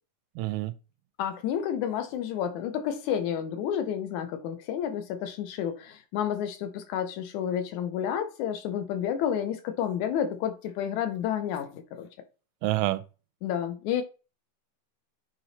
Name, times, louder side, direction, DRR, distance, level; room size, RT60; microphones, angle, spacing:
voice 1, 0.4-0.7 12.6-13.0, right 17 dB, 85° right, 2.2 m, -27 dB
voice 2, 1.2-12.1 13.4-14.0, left 9 dB, 75° left, 1.9 m, -30 dB
8.9 x 3.0 x 4.0 m
omnidirectional pair, 3.7 m